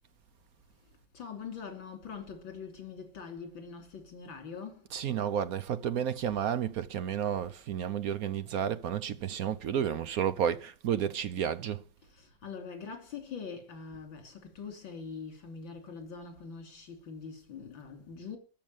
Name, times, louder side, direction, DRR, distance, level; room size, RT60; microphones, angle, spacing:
voice 1, 1.1-4.9 12.0-18.4, left 5 dB, 75° left, 3.6 m, -43 dB
voice 2, 4.9-11.8, right 9 dB, 60° right, 1.0 m, -31 dB
13.0 x 6.8 x 9.1 m
omnidirectional pair, 2.1 m